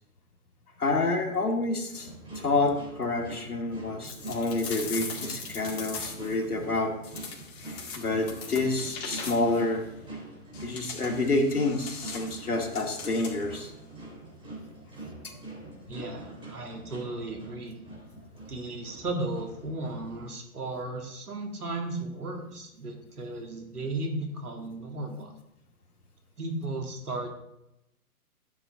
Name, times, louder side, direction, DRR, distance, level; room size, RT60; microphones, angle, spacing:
voice 1, 0.8-2.1 2.4-6.9 8.0-9.8 10.6-13.7 15.2-15.3, left 2 dB, 75° left, 2 dB, 2.1 m, -28 dB
sound 1, 1.9-20.2, right 2 dB, 10° right, 3.4 m, -44 dB
sound 2, 4.0-6.4 7.0-9.7 10.5-13.6, left 5 dB, 40° left, 2.2 m, -40 dB
voice 2, 15.9-17.8 18.5-25.3 26.4-27.3, right 2 dB, 80° right, 2 dB, 2.4 m, -35 dB
13.0 x 7.3 x 3.7 m, 0.85 s
figure-of-eight pair, 120°, 45 cm